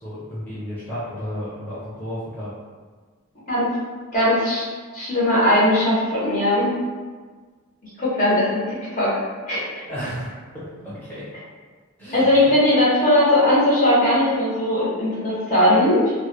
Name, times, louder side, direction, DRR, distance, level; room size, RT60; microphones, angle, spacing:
voice 1, 0.0-2.5 9.8-10.3 10.5-11.2 12.0-12.3, equal, 10° left, -11 dB, 0.7 m, -32 dB
voice 2, 4.1-4.6 4.9-6.7 7.8-9.1 9.5-9.8 12.1-16.1, left 1 dB, 40° left, -8 dB, 0.7 m, -19 dB
2.1 x 2.0 x 3.0 m, 1.5 s
head